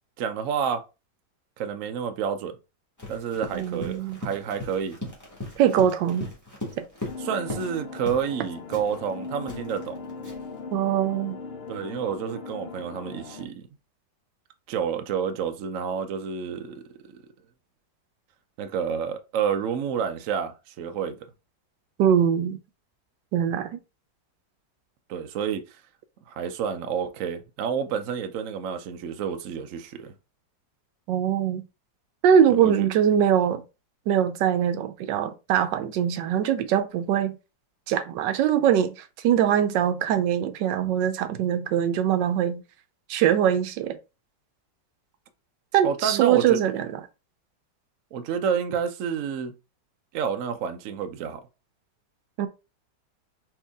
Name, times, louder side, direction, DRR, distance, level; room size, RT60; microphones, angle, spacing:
voice 1, 0.2-0.8 1.6-2.6 3.1-5.0 7.2-10.0 11.7-13.6 14.7-17.2 18.6-21.2 25.1-25.6 26.3-30.1 32.5-32.9 45.8-46.8 48.1-49.5 50.1-51.4, right 7 dB, 65° right, 0.8 m, -29 dB
Run, 3.0-7.8 8.1-8.3 8.7-10.6, left 2 dB, 10° left, 1.5 m, -38 dB
voice 2, 3.5-4.2 5.6-6.3 6.8-6.9 10.7-11.4 22.0-22.6 23.3-23.8 31.1-31.6 32.2-33.6 34.1-37.4 37.9-42.6 43.1-44.0 45.7-47.0 52.4-52.5, right 9 dB, 85° right, 1.3 m, -22 dB
sound 1, 7.1-13.4, left 4 dB, 50° left, 0.8 m, -39 dB
4.5 x 3.3 x 3.5 m
omnidirectional pair, 1.9 m